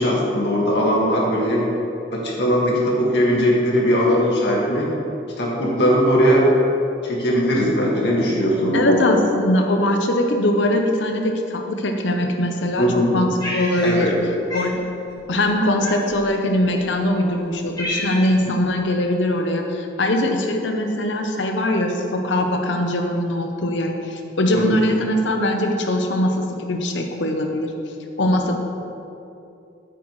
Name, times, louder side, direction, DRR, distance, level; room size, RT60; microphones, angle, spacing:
voice 1, 0.0-1.7 2.1-4.9 5.4-6.5 7.0-9.0 12.8-13.2 13.8-14.2 24.5-24.6, equal, 65° left, -4 dB, 2.0 m, -19 dB
voice 2, 8.7-14.1 14.5-14.8 15.3-27.7 28.2-28.6, left 1 dB, 85° left, 3 dB, 0.8 m, -21 dB
Cat, 13.4-14.2 14.5-14.7 15.8-16.3 17.0-17.1 17.4-18.5, left 1 dB, 25° left, 2.2 m, -29 dB
9.7 x 8.4 x 3.2 m, 2.7 s
head